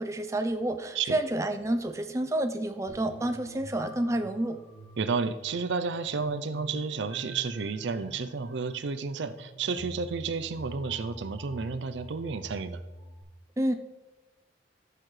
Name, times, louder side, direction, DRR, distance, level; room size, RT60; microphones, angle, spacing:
voice 1, 0.0-4.6 13.6-13.7, right 1 dB, 15° right, 7 dB, 0.5 m, -29 dB
sound 1, 2.9-13.2, right 1 dB, 75° left, 2.8 m, -46 dB
voice 2, 5.0-12.8, right 5 dB, 75° right, 11 dB, 0.5 m, -31 dB
13.5 x 6.7 x 3.2 m, 1.1 s
head